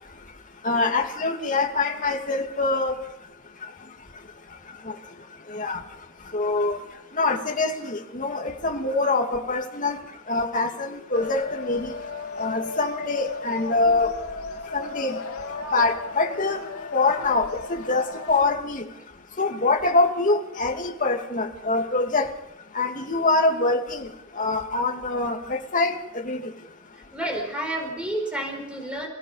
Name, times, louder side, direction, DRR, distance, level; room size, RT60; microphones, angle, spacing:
voice 1, 0.6-2.9 5.5-5.8 6.3-6.8 7.1-10.0 10.3-11.9 12.4-14.1 14.7-15.1 15.7-16.6 16.9-18.8 19.4-22.3 22.7-24.1 24.4-25.9 26.2-26.4, left 3 dB, 35° left, 2 dB, 2.5 m, -24 dB
sound 1, 11.1-18.5, left 3 dB, 90° left, 2.8 m, -35 dB
voice 2, 27.1-29.1, right 1 dB, 5° right, 2 dB, 4.4 m, -30 dB
30.0 x 17.0 x 5.7 m, 0.86 s
head